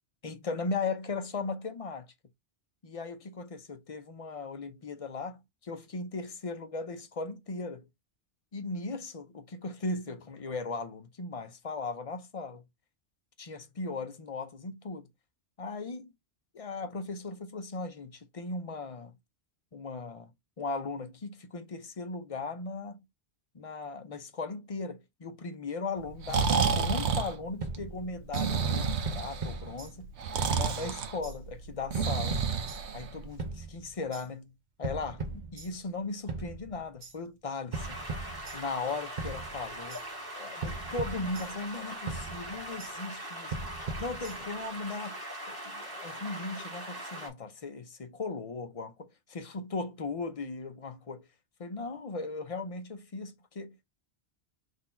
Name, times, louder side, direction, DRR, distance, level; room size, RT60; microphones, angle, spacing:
voice 1, 0.2-2.1 2.8-7.9 8.5-12.6 13.4-15.1 15.6-16.1 16.5-19.1 19.7-20.3 20.6-23.0 23.5-30.1 30.5-32.4 32.9-34.5 34.8-38.0 38.5-40.0 40.3-43.5 44.0-49.1 49.3-51.3 51.6-53.9, left 3 dB, 40° left, 0.6 m, -37 dB
Breathing, 26.0-33.4, right 5 dB, 85° right, 0.9 m, -30 dB
sound 1, 27.6-28.5 29.0-30.2 30.5-31.4 31.9-33.0 33.4-34.3 34.8-36.0 36.3-37.1 37.7-38.9 39.2-40.0 40.6-41.8 42.1-42.9 43.5-44.7, right 3 dB, 45° right, 1.0 m, -39 dB
sound 2, 37.7-47.3, right 1 dB, 20° right, 1.7 m, -41 dB
4.0 x 2.7 x 4.2 m
omnidirectional pair, 1.1 m